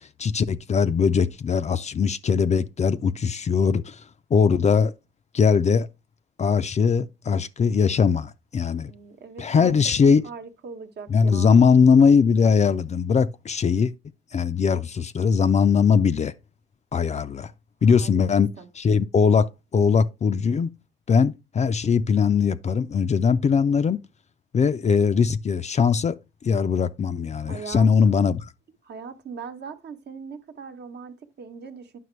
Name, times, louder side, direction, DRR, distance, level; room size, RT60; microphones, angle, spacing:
voice 1, 0.0-4.0 4.3-4.9 5.3-5.9 6.4-8.9 9.4-10.2 11.1-13.9 14.3-16.3 16.9-17.5 17.8-18.5 18.8-20.7 21.1-24.0 24.5-26.1 26.4-28.4, left 6 dB, 35° left, 0.4 m, -20 dB
voice 2, 8.8-9.7 10.0-11.6 17.9-18.7 27.5-28.2 28.8-32.0, right 5 dB, 55° right, 1.0 m, -40 dB
9.4 x 5.9 x 3.1 m
cardioid pair, 90°, 20 cm